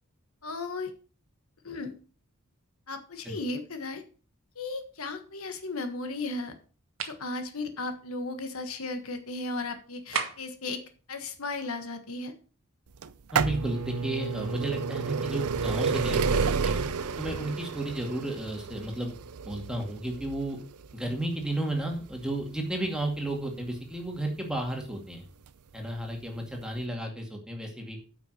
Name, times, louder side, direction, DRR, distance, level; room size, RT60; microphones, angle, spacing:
voice 1, 0.4-0.9 1.6-1.9 2.9-4.0 4.5-6.5 7.0-10.8 11.1-12.3, left 3 dB, 75° left, 8 dB, 1.5 m, -35 dB
sound 1, 6.9-7.3 10.1-10.6, right 6 dB, 65° right, 1.5 m, -32 dB
sound 2, 13.0-24.7 25.5-25.6 26.5-26.6 26.8-26.9, right 5 dB, 90° right, 0.6 m, -31 dB
voice 2, 13.3-16.8 17.2-19.2 19.5-20.6 20.9-25.3 25.7-28.0, right 1 dB, 5° right, 1 dB, 2.2 m, -33 dB
9.2 x 6.1 x 6.4 m, 0.39 s
head